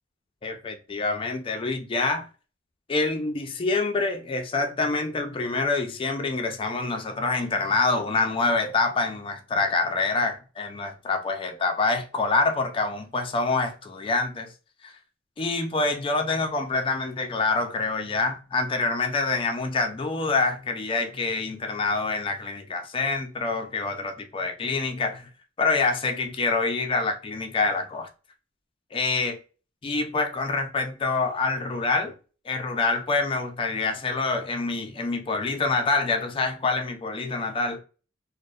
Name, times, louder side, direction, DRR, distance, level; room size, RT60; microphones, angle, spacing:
voice 1, 0.4-2.3 2.9-14.5 14.8-14.9 15.4-25.3 25.6-28.1 28.9-29.4 29.8-32.1 32.5-37.8, left 3 dB, 25° left, 0.4 m, -26 dB
2.7 x 2.0 x 2.2 m
head